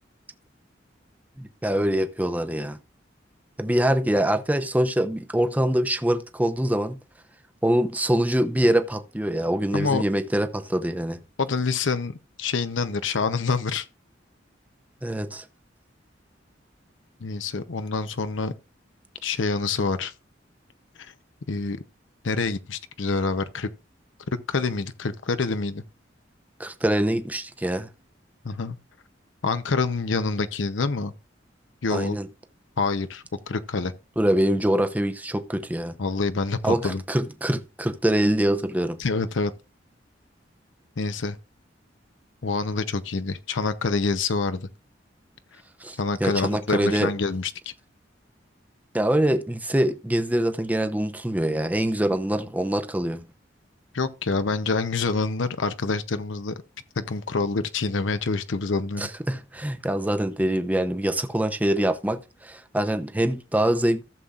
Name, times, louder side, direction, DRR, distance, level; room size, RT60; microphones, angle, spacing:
voice 1, 1.4-2.8 3.6-7.0 7.6-11.2 15.0-15.4 26.6-27.9 31.9-32.3 34.2-36.0 36.6-39.0 45.8-47.1 48.9-53.2 59.0-64.0, right 1 dB, 10° right, 0.7 m, -24 dB
voice 2, 9.7-10.0 11.4-13.9 17.2-18.5 19.2-20.1 21.0-21.1 21.5-21.8 22.2-23.7 24.5-25.8 28.4-28.8 29.4-31.1 31.8-32.2 32.8-33.9 36.0-37.0 39.0-39.5 41.0-41.4 42.4-44.7 46.0-47.7 53.9-56.5 57.0-59.1, left 4 dB, 80° left, 0.7 m, -26 dB
15.0 x 7.1 x 2.4 m
head